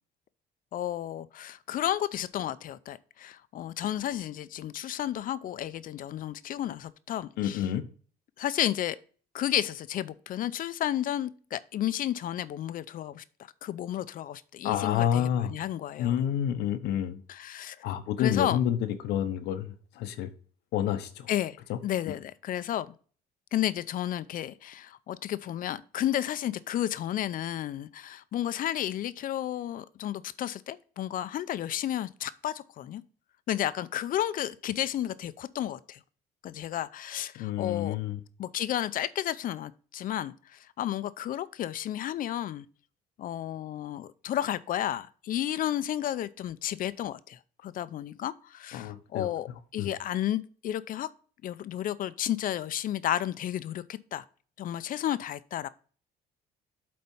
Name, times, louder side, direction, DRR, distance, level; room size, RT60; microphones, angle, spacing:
voice 1, 0.7-7.6 8.4-9.0 9.3-13.2 13.6-16.2 17.3-17.8 18.2-18.6 21.3-21.6 21.8-22.9 23.5-33.0 33.5-36.0 36.4-38.0 38.4-42.7 43.2-49.5 49.7-51.1 51.4-54.2 54.6-55.7, left 12 dB, 55° left, 0.6 m, -32 dB
voice 2, 7.4-7.8 14.6-15.5 16.0-17.2 17.8-18.8 19.0-20.3 20.7-21.3 21.7-21.8 22.1-22.2 37.4-38.2 48.7-49.3 49.8-49.9, left 10 dB, 85° left, 0.9 m, -29 dB
7.8 x 4.3 x 5.5 m
cardioid pair, 110°, 17 cm